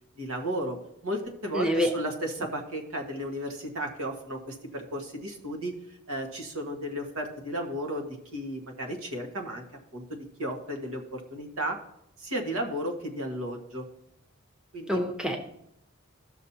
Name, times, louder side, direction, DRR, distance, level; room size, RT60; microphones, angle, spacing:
voice 1, 0.2-0.8 1.0-5.7 6.1-9.6 9.9-11.8 12.2-13.9 14.7-15.0, equal, 85° right, 2 dB, 1.7 m, -34 dB
voice 2, 1.5-1.9 14.9-15.4, equal, 5° right, 2 dB, 0.8 m, -26 dB
15.5 x 6.3 x 2.9 m, 0.77 s
head